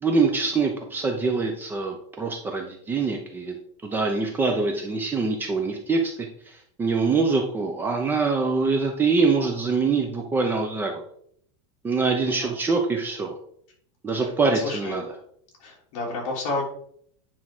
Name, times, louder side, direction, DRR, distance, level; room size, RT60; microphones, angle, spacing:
voice 1, 0.0-3.6 3.8-6.1 6.5-11.0 11.8-13.4 14.0-15.1, right 4 dB, 10° right, 2 dB, 0.7 m, -24 dB
voice 2, 14.1-15.0 15.6-16.6, left 2 dB, 40° left, -2 dB, 3.1 m, -31 dB
9.6 x 3.7 x 6.0 m, 0.65 s
supercardioid pair, 170°, 17 cm